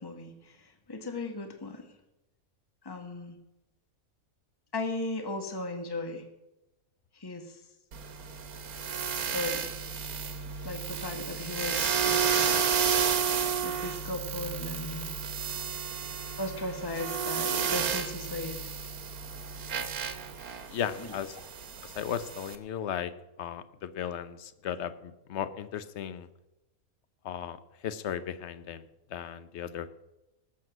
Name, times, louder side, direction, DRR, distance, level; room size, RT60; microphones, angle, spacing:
voice 1, 0.0-1.9 2.8-3.4 4.7-6.2 7.1-7.6 9.1-9.7 10.6-12.6 13.6-15.1 16.4-18.8 21.1-21.2, left 2 dB, 15° left, 5 dB, 1.4 m, -37 dB
sound 1, 7.9-22.5, right 7 dB, 85° right, 1.6 m, -32 dB
voice 2, 20.7-21.4 21.8-23.1 23.4-26.3 27.2-28.8 29.1-29.9, left 9 dB, 55° left, 13 dB, 1.0 m, -36 dB
19.0 x 7.4 x 6.1 m, 0.94 s
omnidirectional pair, 1.5 m